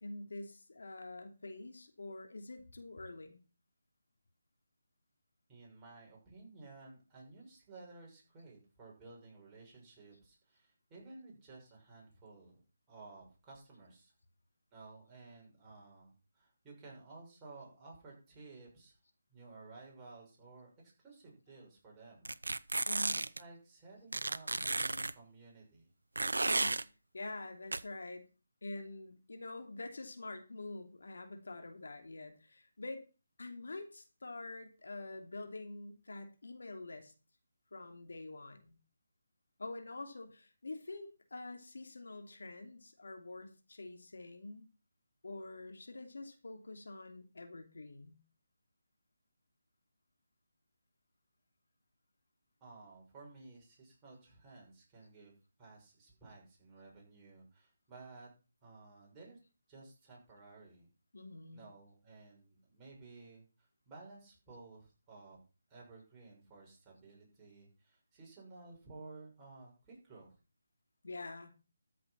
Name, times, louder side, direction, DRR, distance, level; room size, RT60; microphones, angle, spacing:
voice 1, 0.0-3.4 22.8-23.2 26.4-26.8 27.1-28.2 28.6-33.0 33.4-37.1 37.7-38.8 39.6-44.7 45.2-48.2 61.1-61.7 71.0-71.5, left 2 dB, 70° left, 5 dB, 2.9 m, -46 dB
voice 2, 5.5-14.1 14.7-19.0 19.3-22.3 23.4-25.9 52.6-55.3 55.6-58.3 58.6-59.4 59.7-60.9 61.5-65.4 65.7-70.3, right 3 dB, 15° right, -4 dB, 6.3 m, -55 dB
sound 1, 22.2-23.4 24.1-25.1 26.2-26.8 27.7-27.8, right 2 dB, 85° right, 0.7 m, -33 dB
13.5 x 7.5 x 5.9 m, 0.34 s
figure-of-eight pair, 160°, 0 cm